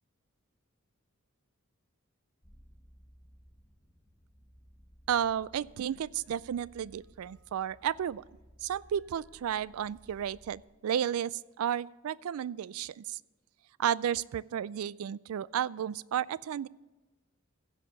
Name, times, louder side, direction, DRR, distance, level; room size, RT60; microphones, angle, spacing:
sound 1, 2.4-10.6, equal, 15° left, 1.0 m, -59 dB
voice 1, 5.1-8.2 8.6-13.2 13.8-16.7, right 9 dB, 70° right, 21 dB, 0.3 m, -33 dB
15.5 x 5.2 x 7.0 m, 1.1 s
head